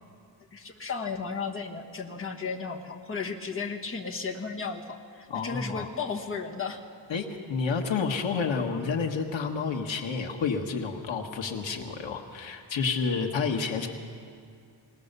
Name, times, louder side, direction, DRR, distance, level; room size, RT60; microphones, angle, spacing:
voice 1, 0.5-6.8, left 5 dB, 30° left, 2 dB, 1.4 m, -34 dB
voice 2, 5.3-5.9 7.1-13.9, left 5 dB, 80° left, 2 dB, 1.7 m, -30 dB
21.0 x 19.0 x 6.8 m, 2.3 s
wide cardioid pair, 180°, 45 cm